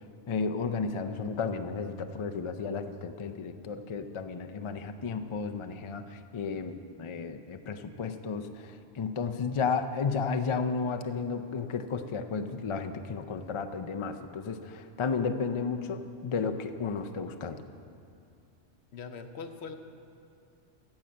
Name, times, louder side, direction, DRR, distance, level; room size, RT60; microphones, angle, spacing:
voice 1, 0.3-17.6, left 5 dB, 45° left, 7 dB, 0.4 m, -33 dB
voice 2, 18.9-19.7, left 5 dB, 70° left, 7 dB, 1.0 m, -41 dB
16.0 x 5.6 x 7.5 m, 2.5 s
omnidirectional pair, 1.1 m